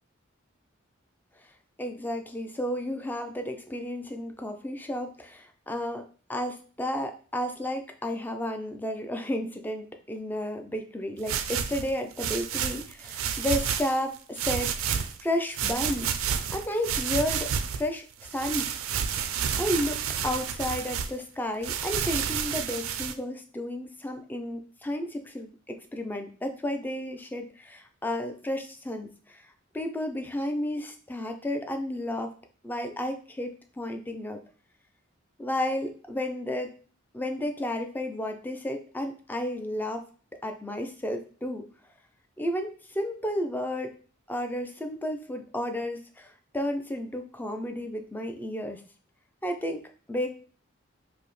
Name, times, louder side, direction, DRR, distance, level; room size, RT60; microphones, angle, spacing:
voice 1, 1.8-14.9 15.2-16.1 16.5-18.0 18.3-18.8 19.1-19.2 19.6-29.4 29.7-32.3 32.6-34.4 35.4-36.8 37.1-40.1 40.4-41.6 42.4-43.9 44.3-48.8 49.4-49.8 50.1-50.3, left 1 dB, 10° left, 5 dB, 0.4 m, -32 dB
sound 1, 11.2-14.0 14.4-15.2 15.5-17.9 18.2-21.1 21.6-23.1, right 8 dB, 85° right, 0.4 m, -30 dB
4.8 x 2.0 x 3.1 m, 0.41 s
head